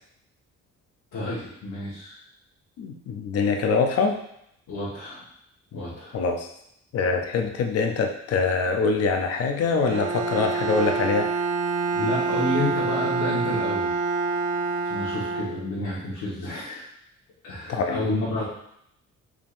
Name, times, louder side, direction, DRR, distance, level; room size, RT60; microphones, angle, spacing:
voice 1, 1.1-2.2 4.7-5.2 5.7-6.2 11.9-13.9 14.8-16.9 17.4-18.4, left 1 dB, 70° left, -9 dB, 1.3 m, -30 dB
voice 2, 2.8-4.2 6.1-6.5 6.9-11.3 17.7-18.0, left 4 dB, 55° left, 4 dB, 0.6 m, -24 dB
Bowed string instrument, 9.8-16.0, right 4 dB, 55° right, 0.4 m, -27 dB
4.7 x 3.6 x 2.5 m, 0.75 s
cardioid pair, 170°, 29 cm